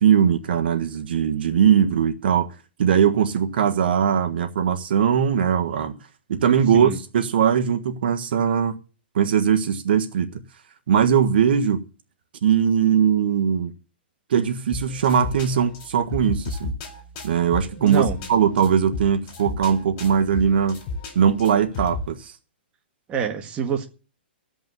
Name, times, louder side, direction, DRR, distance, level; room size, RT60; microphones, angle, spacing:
voice 1, 0.0-2.5 2.8-6.0 6.3-8.8 9.1-10.3 10.9-11.8 12.4-13.7 14.3-16.7 17.2-18.0 18.3-20.8 21.1-22.3, right 8 dB, 65° right, 1.5 m, -20 dB
sound 1, 14.7-22.1, left 3 dB, 35° left, 4.1 m, -34 dB
voice 2, 17.8-18.3 23.1-23.8, right 7 dB, 20° right, 1.7 m, -26 dB
15.0 x 5.4 x 9.5 m
hypercardioid pair, 155°, 6 cm